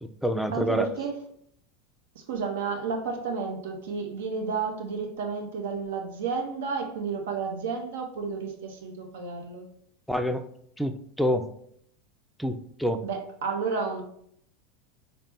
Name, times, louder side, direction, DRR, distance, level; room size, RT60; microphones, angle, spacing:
voice 1, 0.0-0.9 10.1-10.4 10.8-11.4 12.4-13.0, equal, ahead, 7 dB, 0.4 m, -27 dB
voice 2, 0.5-1.2 2.1-9.6 13.0-14.0, right 5 dB, 80° right, 2 dB, 0.7 m, -31 dB
4.2 x 2.1 x 3.3 m, 0.67 s
hypercardioid pair, 95°, 0 cm